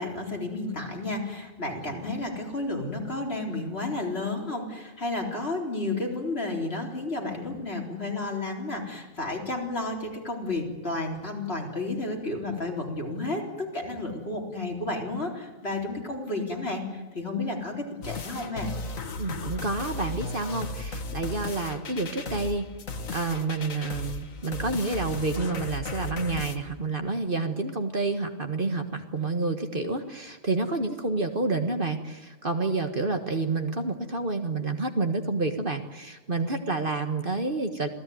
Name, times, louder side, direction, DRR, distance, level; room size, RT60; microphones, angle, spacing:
voice 1, 0.0-18.7, left 2 dB, 50° left, 0 dB, 4.3 m, -32 dB
sound 1, 18.0-26.6, left 2 dB, 80° left, 1.9 m, -36 dB
voice 2, 19.2-22.7 23.1-37.9, right 3 dB, 40° right, 6 dB, 1.7 m, -29 dB
27.0 x 17.0 x 9.5 m, 1.2 s
omnidirectional pair, 1.4 m